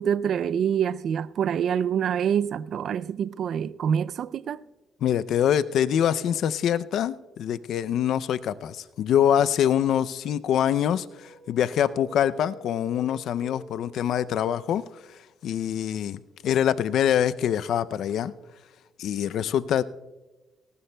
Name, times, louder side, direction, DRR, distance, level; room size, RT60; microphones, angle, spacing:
voice 1, 0.0-4.6, right 8 dB, 65° right, 0.3 m, -26 dB
voice 2, 5.0-14.8 15.4-18.3 19.0-19.8, left 9 dB, 75° left, 0.5 m, -24 dB
sound 1, 10.6-14.2, left 1 dB, 5° right, 4.6 m, -49 dB
19.0 x 18.5 x 2.2 m
cardioid pair, 90°, 0 cm